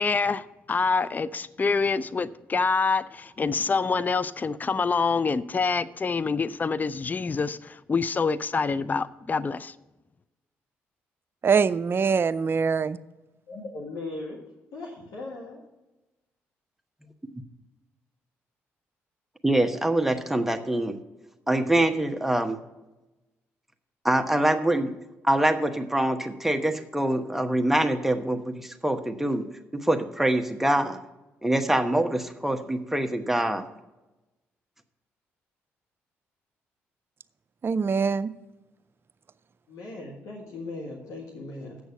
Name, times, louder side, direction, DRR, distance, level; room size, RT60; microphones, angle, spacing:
voice 1, 0.0-9.7, left 4 dB, 30° left, 0.4 m, -26 dB
voice 2, 11.4-13.0 37.6-38.3, right 5 dB, 40° right, 0.5 m, -23 dB
voice 3, 13.5-14.4 14.7-15.6 39.7-41.8, left 2 dB, 70° left, 1.5 m, -38 dB
voice 4, 19.4-20.9 21.5-22.6 24.0-24.9 25.2-29.4 29.8-31.0 31.4-33.6, right 1 dB, 5° right, 1.1 m, -24 dB
8.1 x 6.3 x 6.9 m
hypercardioid pair, 55°, 6 cm